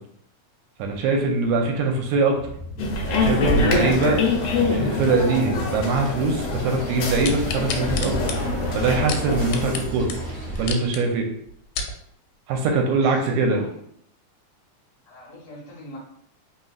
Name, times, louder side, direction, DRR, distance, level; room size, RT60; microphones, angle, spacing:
voice 1, 0.8-2.4 3.0-4.2 4.5-8.3 8.7-10.1 10.6-11.3 12.5-13.6, right 3 dB, 80° right, 2 dB, 1.9 m, -22 dB
sound 1, 2.3-10.7, right 1 dB, 45° right, 0.8 m, -33 dB
sound 2, 2.8-9.7, left 3 dB, 70° left, 1.8 m, -25 dB
sound 3, 7.2-9.8 10.1-10.2 10.6-11.0 11.5-12.0 12.6-12.7, left 5 dB, 85° left, 2.1 m, -31 dB
voice 2, 12.9-13.7 15.0-16.0, left 1 dB, 45° left, -5 dB, 0.4 m, -42 dB
4.0 x 3.8 x 2.4 m, 0.67 s
omnidirectional pair, 3.5 m